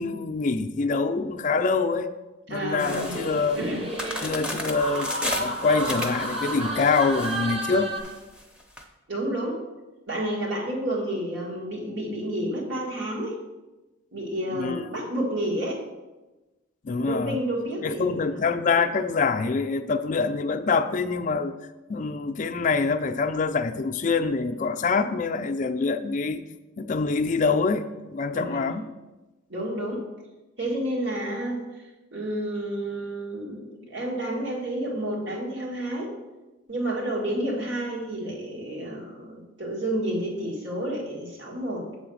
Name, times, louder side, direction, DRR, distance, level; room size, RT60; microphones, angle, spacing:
voice 1, 0.0-2.1 2.5-3.6 4.2-7.9 14.5-14.9 16.8-17.4 17.8-21.5 21.9-26.4 26.8-28.9, left 4 dB, 40° left, 0.4 m, -25 dB
voice 2, 2.5-3.2 3.6-3.9 9.1-9.6 10.1-13.4 14.1-15.8 16.9-18.2 28.3-28.8 29.5-30.1 30.6-31.8 32.1-36.2 36.7-41.9, right 1 dB, 65° right, 1.8 m, -30 dB
sound 1, 2.8-8.8, left 1 dB, 5° right, 0.6 m, -35 dB
sound 2, 2.9-8.0, right 1 dB, 30° right, 0.9 m, -32 dB
7.4 x 3.9 x 6.3 m
head